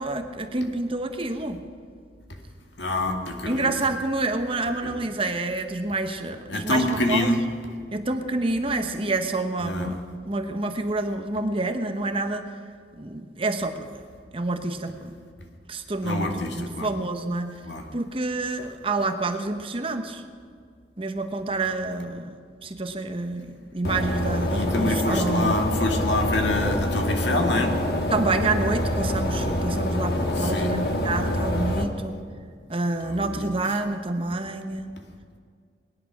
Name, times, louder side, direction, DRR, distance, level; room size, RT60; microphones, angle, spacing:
voice 1, 0.0-1.6 3.5-7.3 7.9-10.0 10.3-12.5 13.0-14.0 14.3-15.1 15.7-17.5 17.9-20.2 21.0-22.4 22.6-25.6 28.1-32.2 32.7-34.9, right 2 dB, 30° right, 7 dB, 0.9 m, -28 dB
voice 2, 2.8-3.7 4.8-4.9 6.5-7.4 9.6-9.9 16.0-16.9 17.6-17.9 24.5-27.8 30.3-30.7 33.0-33.5, left 2 dB, 75° left, 3 dB, 2.0 m, -26 dB
sound 1, 23.8-31.8, left 1 dB, 55° left, 1.6 m, -26 dB
20.0 x 11.0 x 6.0 m, 2.1 s
head